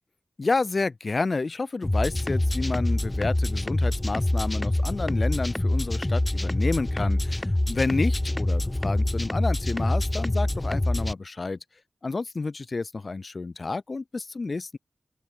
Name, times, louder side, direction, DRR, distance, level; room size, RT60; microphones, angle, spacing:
voice 1, 0.4-11.6 12.0-14.8, left 3 dB, 55° left, 3.0 m, -30 dB
sound 1, 1.8-11.1, left 1 dB, 20° left, 1.2 m, -25 dB
open air
wide cardioid pair, 70°, 0 cm